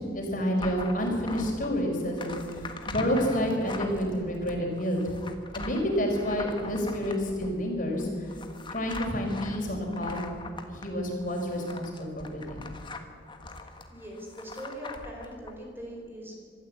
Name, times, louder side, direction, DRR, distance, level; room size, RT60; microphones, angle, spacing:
voice 1, 0.0-5.0 5.5-8.3 8.7-10.2 10.7-12.6, equal, 45° left, 1 dB, 4.5 m, -29 dB
sound 1, 0.6-15.5, left 3 dB, 25° left, 1.5 m, -42 dB
voice 2, 13.9-16.4, equal, 10° right, 0 dB, 3.9 m, -41 dB
24.5 x 13.5 x 8.4 m, 2.4 s
head